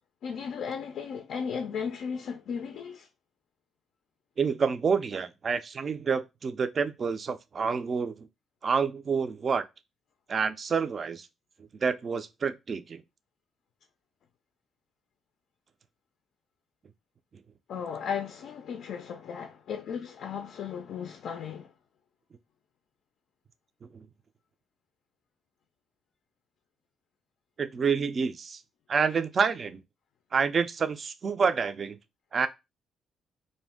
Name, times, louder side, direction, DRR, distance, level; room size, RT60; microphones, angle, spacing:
voice 1, 0.2-3.1 17.7-21.7, left 7 dB, 70° left, 0.3 m, -35 dB
voice 2, 4.4-8.3 8.6-9.6 10.3-11.3 11.8-13.0 27.6-28.6 28.9-29.8 30.3-32.0 32.3-32.5, right 5 dB, 45° right, 0.3 m, -28 dB
2.5 x 2.1 x 3.4 m
cardioid pair, 90°, 0 cm